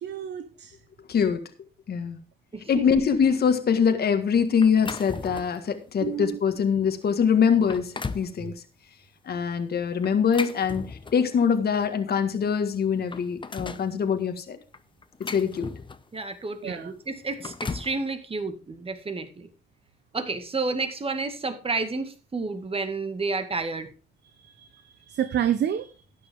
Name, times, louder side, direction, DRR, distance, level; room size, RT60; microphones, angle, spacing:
voice 1, 0.0-0.7 6.0-6.4 16.6-16.9 24.4-24.8 25.1-25.9, right 10 dB, 60° right, 10 dB, 1.0 m, -29 dB
voice 2, 1.1-1.4 1.9-2.2 2.7-8.5 9.3-14.6 15.3-15.7, left 6 dB, 50° left, 7 dB, 1.7 m, -23 dB
voice 3, 2.5-2.8 16.1-19.5 20.1-23.9, right 3 dB, 30° right, 8 dB, 2.1 m, -31 dB
sound 1, 4.6-5.7 6.2-6.4 7.0-7.1 7.5-8.3 10.0-11.4 12.4-12.5 12.8-13.9 14.7-16.2 17.2-18.0, left 4 dB, 25° left, 1.0 m, -36 dB
12.5 x 10.0 x 3.6 m, 0.34 s
cardioid pair, 90°, 20 cm